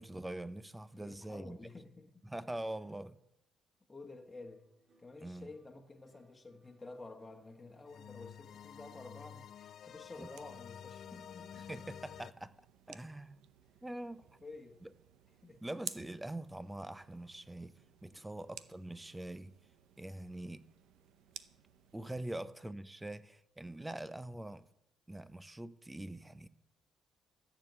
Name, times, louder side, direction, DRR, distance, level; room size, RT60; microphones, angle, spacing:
voice 1, 0.0-1.6 2.2-3.2 5.2-5.5 10.2-10.3 11.5-12.5 12.9-13.5 13.8-14.2 14.8-14.9 15.6-19.5 20.0-20.7 21.9-24.7 25.1-26.5, right 1 dB, 10° right, 0.8 m, -44 dB
voice 2, 1.0-2.2 3.9-4.6 5.0-11.8 14.4-14.8 15.4-15.6 18.1-18.3, left 3 dB, 20° left, 1.5 m, -51 dB
sound 1, 4.3-12.8 13.1-13.7, right 2 dB, 65° right, 4.0 m, -72 dB
sound 2, 6.8-6.9 7.9-12.3, left 9 dB, 65° left, 0.5 m, -51 dB
sound 3, 9.9-22.3, right 11 dB, 90° right, 0.7 m, -55 dB
14.0 x 7.2 x 8.1 m
cardioid pair, 90°, 0 cm